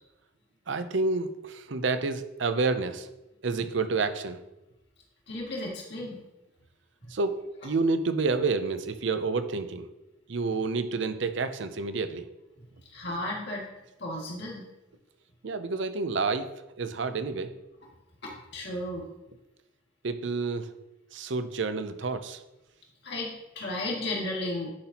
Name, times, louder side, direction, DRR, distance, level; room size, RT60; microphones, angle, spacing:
voice 1, 0.7-3.1 3.4-4.4 7.1-7.4 7.6-9.9 10.3-12.3 15.4-16.5 16.8-17.5 20.0-20.7 21.1-22.4, right 4 dB, 65° right, 10 dB, 0.6 m, -29 dB
voice 2, 5.3-6.2 12.9-13.6 14.0-14.6 18.2-19.0 23.0-24.7, left 1 dB, 55° left, -3 dB, 2.1 m, -34 dB
10.5 x 5.9 x 2.9 m, 0.97 s
head